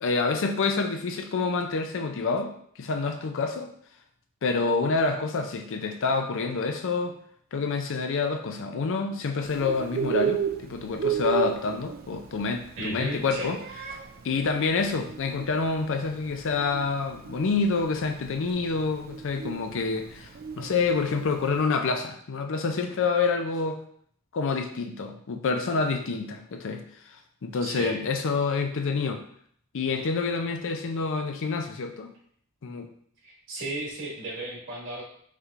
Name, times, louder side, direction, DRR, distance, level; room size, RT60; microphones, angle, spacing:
voice 1, 0.0-2.5 2.8-3.7 4.4-7.2 7.5-13.6 14.2-23.8 24.3-26.8 27.4-29.2 29.7-32.1 32.6-32.9, left 4 dB, 60° left, 6 dB, 0.5 m, -27 dB
Bird, 9.4-21.6, right 7 dB, 45° right, 0.3 m, -34 dB
voice 2, 12.8-13.5 27.6-28.0 33.2-35.0, right 1 dB, 60° right, -5 dB, 1.7 m, -34 dB
5.5 x 3.1 x 2.5 m, 0.63 s
head